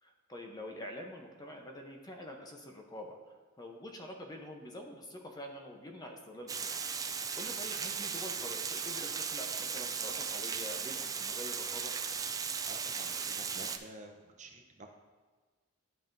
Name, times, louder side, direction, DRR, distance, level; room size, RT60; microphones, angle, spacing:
voice 1, 0.0-6.7 7.1-11.9, left 1 dB, 20° left, 2 dB, 0.7 m, -46 dB
Water, 6.5-13.8, right 6 dB, 15° right, 0.3 m, -37 dB
voice 2, 12.7-14.9, right 2 dB, 35° right, 3 dB, 0.7 m, -50 dB
11.0 x 5.5 x 2.6 m, 1.4 s
head